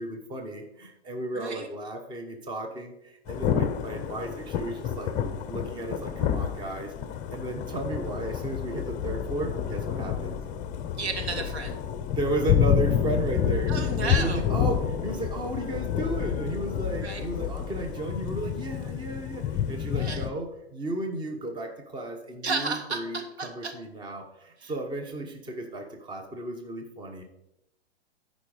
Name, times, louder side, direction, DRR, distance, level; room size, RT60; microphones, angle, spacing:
voice 1, 0.0-5.1 5.5-6.9 7.3-10.4 12.1-27.2, right 1 dB, 15° right, 4 dB, 1.0 m, -34 dB
voice 2, 1.3-1.7 11.0-11.8 13.7-14.5 17.0-17.2 19.9-20.3 22.4-23.7 24.6-24.7, right 4 dB, 80° right, 4 dB, 2.0 m, -33 dB
Thunder / Rain, 3.3-20.3, left 8 dB, 25° left, 0.7 m, -29 dB
12.5 x 5.3 x 5.0 m, 0.84 s
hypercardioid pair, 135°, 32 cm